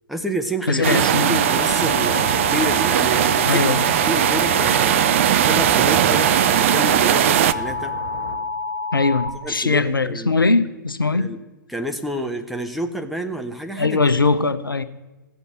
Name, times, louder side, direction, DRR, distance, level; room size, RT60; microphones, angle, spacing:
voice 1, 0.1-5.0 5.4-7.9 9.4-10.4 11.1-11.4 11.7-14.0, equal, ahead, 0.6 m, -29 dB
voice 2, 0.7-1.4 3.5-3.8 8.9-11.3 13.8-14.8, left 3 dB, 80° left, 0.8 m, -20 dB
sound 1, 0.8-7.5, right 12 dB, 35° right, 0.4 m, -19 dB
Alarm, 1.1-9.3, left 3 dB, 60° right, 1.6 m, -28 dB
sh seattle warehouse district alley, 1.9-8.4, right 1 dB, 85° right, 2.9 m, -36 dB
15.0 x 6.7 x 7.7 m
figure-of-eight pair, 120°, 11 cm